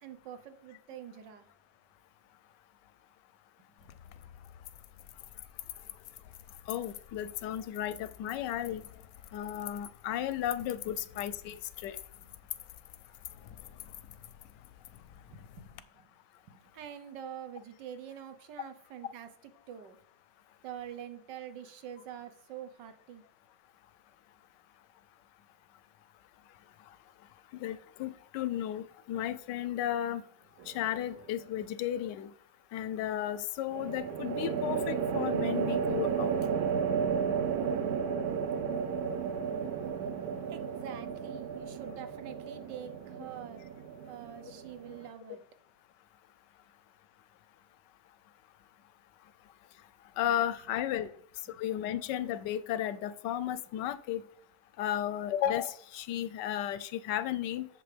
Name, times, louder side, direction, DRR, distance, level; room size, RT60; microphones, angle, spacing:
voice 1, 0.0-1.4 3.8-4.1 11.0-11.1 11.5-11.6 12.1-12.3 15.1-16.1 16.5-19.3 19.7-20.0 20.6-23.2 40.5-43.7 44.1-45.4 51.5-51.6, right 9 dB, 85° right, 10 dB, 1.6 m, -46 dB
sound 1, 3.8-15.8, left 12 dB, 70° left, 0.9 m, -48 dB
voice 2, 6.7-8.8 9.3-11.6 11.8-12.0 27.5-30.2 30.7-32.3 32.7-36.4 50.2-51.1 51.6-54.2 54.8-57.7, left 11 dB, 90° left, 14 dB, 1.2 m, -34 dB
sound 2, 30.6-31.2 33.7-45.1, right 6 dB, 65° right, 1.2 m, -33 dB
8.0 x 7.0 x 3.3 m, 0.65 s
omnidirectional pair, 1.8 m